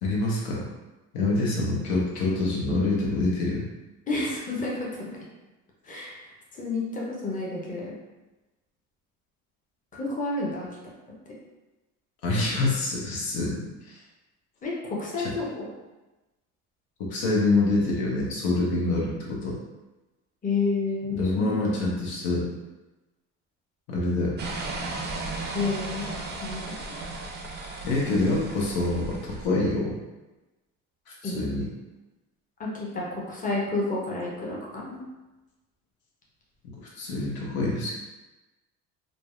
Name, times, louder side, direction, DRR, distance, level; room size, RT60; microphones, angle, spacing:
voice 1, 0.0-0.6 1.1-3.7 12.2-14.0 15.2-15.3 17.0-19.6 21.1-22.5 23.9-24.4 27.8-30.0 31.2-31.7 36.9-38.0, left 2 dB, 70° left, -4 dB, 0.8 m, -26 dB
voice 2, 4.1-5.1 5.8-6.2 6.5-7.9 9.9-10.7 14.6-15.7 20.4-21.8 25.5-26.6 31.2-31.5 32.6-35.0, left 3 dB, 20° left, -4 dB, 0.7 m, -30 dB
sound 1, 24.4-29.5, right 3 dB, 30° right, 0.4 m, -35 dB
2.6 x 2.0 x 2.4 m, 1.1 s
hypercardioid pair, 75°, 39 cm